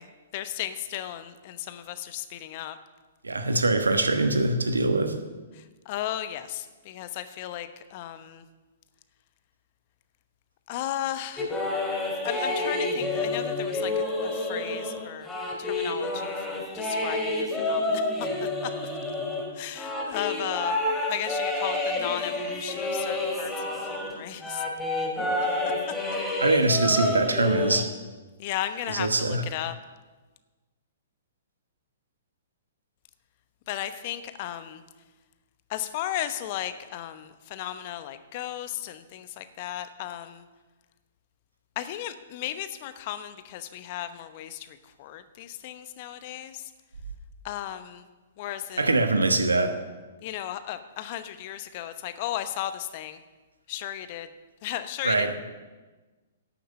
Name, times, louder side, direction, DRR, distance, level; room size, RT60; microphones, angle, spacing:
voice 1, 0.0-2.8 5.5-8.4 10.7-11.6 12.2-15.3 15.6-18.9 19.5-20.8 21.1-24.6 28.4-29.7 33.7-34.8 35.7-40.5 41.8-46.7 47.4-48.0 48.4-48.9 50.2-53.2 53.7-54.3 54.6-55.3, left 12 dB, 45° left, 11 dB, 0.9 m, -35 dB
voice 2, 3.2-5.1 26.4-27.9 28.9-29.4 48.8-49.8 55.0-55.3, right 2 dB, 85° right, 7 dB, 1.3 m, -23 dB
sound 1, 11.4-24.1 24.4-27.8, left 2 dB, 5° left, 2.5 m, -29 dB
11.5 x 7.1 x 7.5 m, 1.3 s
figure-of-eight pair, 120°, 0 cm